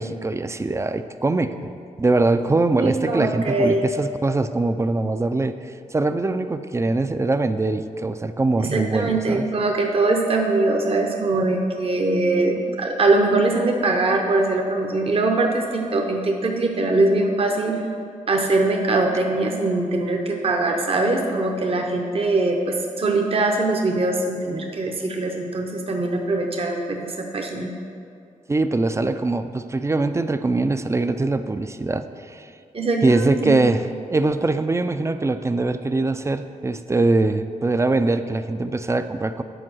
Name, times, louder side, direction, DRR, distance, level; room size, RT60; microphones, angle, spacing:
voice 1, 0.0-1.7 2.0-5.5 5.9-9.5 12.7-12.8 28.5-32.5 33.0-33.8 34.1-39.4, right 2 dB, 20° right, 10 dB, 0.4 m, -22 dB
voice 2, 2.8-3.8 8.6-17.8 18.3-27.7 32.7-33.6, right 2 dB, 45° right, 2 dB, 0.8 m, -22 dB
9.9 x 4.6 x 6.2 m, 2.4 s
wide cardioid pair, 100°, 14 cm